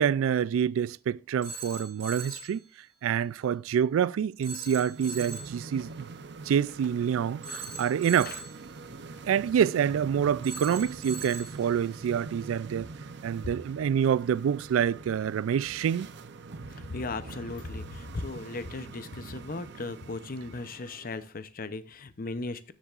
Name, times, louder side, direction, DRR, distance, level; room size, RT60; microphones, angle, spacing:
voice 1, 0.0-2.6 3.0-6.1 6.4-8.4 9.3-12.9 13.2-16.1, right 8 dB, 85° right, 0.3 m, -27 dB
Telephone, 1.4-2.6 4.4-5.6 7.4-8.6 10.4-11.6, right 3 dB, 30° right, 2.3 m, -40 dB
sound 1, 4.7-21.3, right 3 dB, 60° right, 0.6 m, -44 dB
voice 2, 16.9-22.7, left 3 dB, 45° left, 0.6 m, -37 dB
13.5 x 7.4 x 2.4 m
head